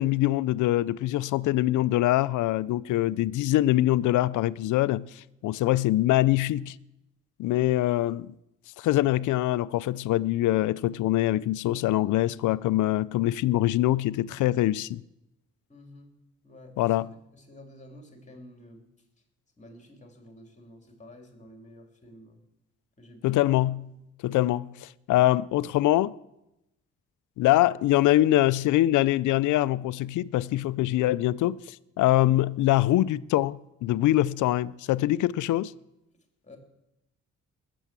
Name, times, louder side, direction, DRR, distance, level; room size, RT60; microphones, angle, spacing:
voice 1, 0.0-6.8 7.4-8.3 8.8-15.0 16.8-17.1 23.2-26.1 27.4-35.7, left 15 dB, 80° left, 0.5 m, -24 dB
voice 2, 15.7-16.1 16.4-16.8 17.3-18.9 19.6-22.4 23.0-23.4 32.0-32.1 36.4-36.6, left 1 dB, 25° left, 3.0 m, -50 dB
20.5 x 7.0 x 7.5 m
cardioid pair, 90°, 30 cm